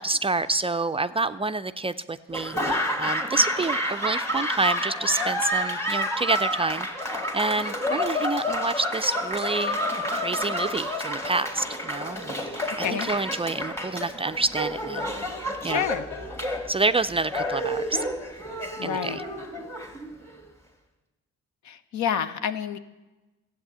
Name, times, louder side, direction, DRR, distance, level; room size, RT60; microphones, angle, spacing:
voice 1, 0.0-6.9 7.3-9.8 10.1-15.1 15.6-15.9 16.7-18.0 18.8-19.2, right 3 dB, 20° right, 10 dB, 0.4 m, -28 dB
Laughter / Applause, 2.3-20.4, equal, 10° left, 2.0 m, -29 dB
voice 2, 15.6-16.0 18.8-19.2 21.6-22.8, left 8 dB, 70° left, 12 dB, 0.9 m, -28 dB
13.5 x 8.2 x 7.9 m, 1.1 s
cardioid pair, 90°, 30 cm